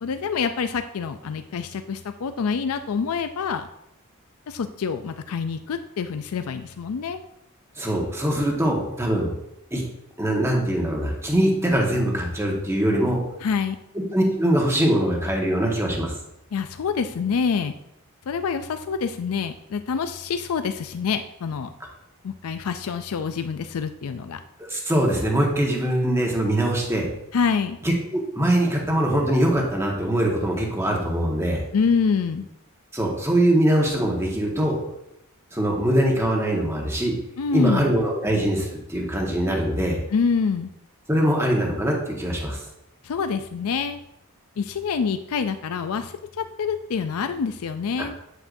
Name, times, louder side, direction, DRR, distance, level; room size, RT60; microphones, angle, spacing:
voice 1, 0.0-3.7 4.5-7.2 13.4-13.8 16.5-17.7 18.3-21.7 22.2-24.4 27.3-27.8 31.7-32.5 37.4-37.9 40.1-40.7 43.0-44.0 44.6-48.2, left 5 dB, 70° left, 9 dB, 0.4 m, -26 dB
voice 2, 7.8-9.3 9.7-9.8 10.2-13.2 14.1-16.1 24.6-27.1 27.8-31.6 32.9-34.8 35.5-37.1 37.5-40.0 41.1-42.6, right 1 dB, 10° right, -1 dB, 1.4 m, -22 dB
8.3 x 8.0 x 2.6 m, 0.82 s
head